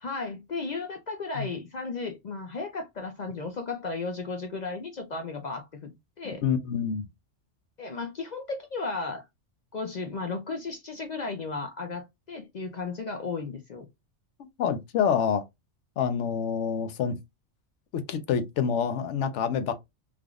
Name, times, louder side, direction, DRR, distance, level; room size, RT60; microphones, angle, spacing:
voice 1, 0.0-5.9 6.2-6.4 7.8-9.2 9.7-13.9, left 3 dB, 55° left, 0.5 m, -34 dB
voice 2, 6.2-7.1 14.6-15.4 16.0-17.2 17.9-19.7, left 7 dB, 75° left, 0.9 m, -27 dB
3.4 x 2.4 x 2.3 m
omnidirectional pair, 1.2 m